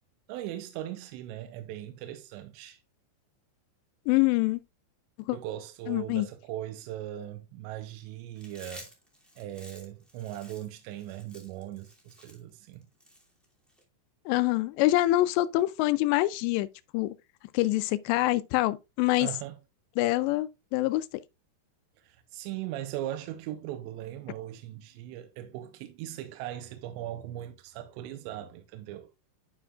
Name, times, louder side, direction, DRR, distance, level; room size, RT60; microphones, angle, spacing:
voice 1, 0.3-2.8 5.3-8.9 9.4-12.9 19.2-19.6 22.0-29.1, right 12 dB, 90° right, 2.9 m, -39 dB
voice 2, 4.1-4.6 5.3-5.4 5.9-6.3 14.3-16.7 16.9-17.1 17.5-19.3 20.0-21.1, left 17 dB, 85° left, 2.7 m, -25 dB
Chewing mastication, 8.4-13.8, equal, ahead, 0.9 m, -52 dB
11.5 x 5.1 x 2.4 m
omnidirectional pair, 5.2 m